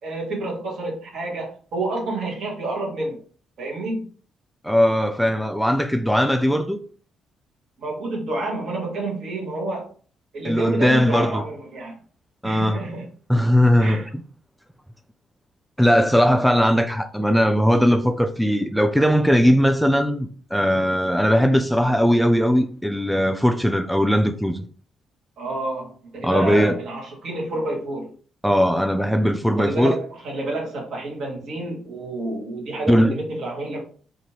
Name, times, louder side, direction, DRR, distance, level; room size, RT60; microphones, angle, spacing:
voice 1, 0.0-3.2 3.6-4.1 7.8-9.9 10.3-12.0 12.4-13.1 13.8-14.1 25.4-28.1 29.6-33.8, right 2 dB, 60° right, 1.0 m, -29 dB
voice 2, 4.6-6.8 10.4-11.4 12.4-12.8 13.3-14.0 15.8-24.6 26.2-26.8 28.4-30.0 32.9-33.1, equal, ahead, 0.3 m, -19 dB
2.6 x 2.4 x 2.9 m
figure-of-eight pair, 40°, 0 cm